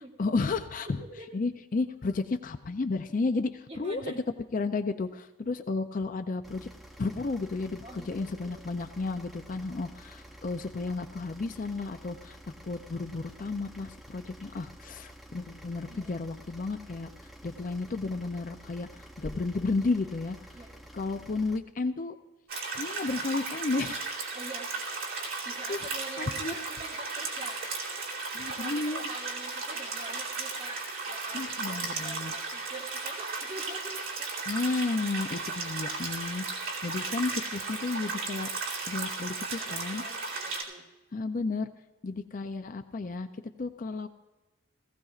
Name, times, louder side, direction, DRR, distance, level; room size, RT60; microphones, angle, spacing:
voice 1, 0.2-1.0 1.3-4.1 4.5-6.7 7.0-12.4 12.6-17.1 17.4-20.4 20.9-22.2 22.7-24.2 25.7-25.8 26.2-26.5 28.3-29.1 31.3-32.3 34.5-40.0 41.1-41.7 42.0-43.3 43.6-44.1, left 3 dB, 40° left, 9 dB, 0.4 m, -32 dB
voice 2, 3.7-4.2 7.8-8.7 15.9-16.1 20.5-20.8 24.3-24.7 25.4-27.6 28.5-34.3 39.6-40.8, right 2 dB, 30° right, -1 dB, 1.7 m, -45 dB
sound 1, 6.4-21.6, equal, ahead, 0.7 m, -50 dB
sound 2, 19.2-19.7, equal, 80° left, 2.3 m, -42 dB
sound 3, 22.5-40.6, right 3 dB, 75° right, 2.8 m, -35 dB
18.0 x 16.0 x 2.4 m, 1.1 s
head